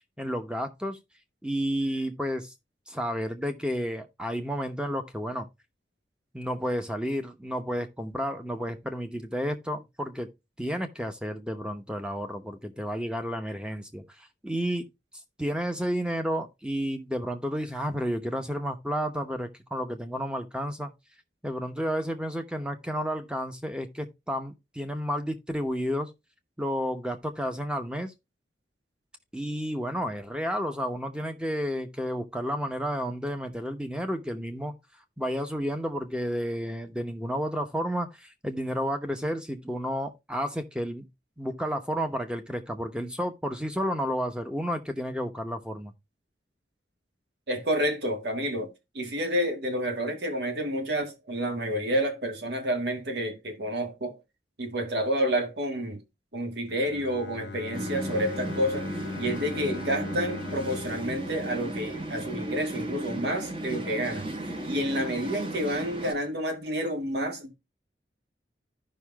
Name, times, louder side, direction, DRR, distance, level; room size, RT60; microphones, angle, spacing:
voice 1, 0.2-1.0 1.4-2.5 2.9-5.5 6.3-10.3 10.6-14.9 15.4-20.9 21.4-26.1 26.6-28.1 29.3-34.7 35.2-41.1 41.4-45.9, equal, 5° right, 0.9 m, -31 dB
voice 2, 47.5-54.2 54.6-56.0 56.3-58.9 59.2-67.5, equal, 65° right, 1.6 m, -29 dB
Bowed string instrument, 56.7-62.7, left 5 dB, 70° left, 0.6 m, -41 dB
sound 1, 57.7-66.1, right 1 dB, 30° right, 1.1 m, -35 dB
14.5 x 5.6 x 2.3 m
head